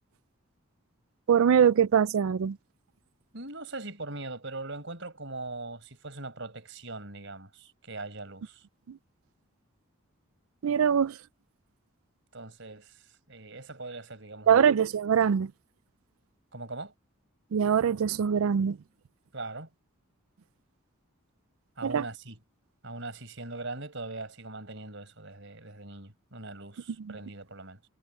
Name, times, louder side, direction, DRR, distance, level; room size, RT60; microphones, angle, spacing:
voice 1, 1.3-2.6 10.6-11.2 14.5-15.5 17.5-18.8 21.8-22.0 27.1-27.2, right 7 dB, 80° right, 0.4 m, -23 dB
voice 2, 3.3-8.7 12.3-14.6 16.5-16.9 19.3-19.7 21.8-22.4 22.8-27.8, right 2 dB, 60° right, 5.3 m, -41 dB
head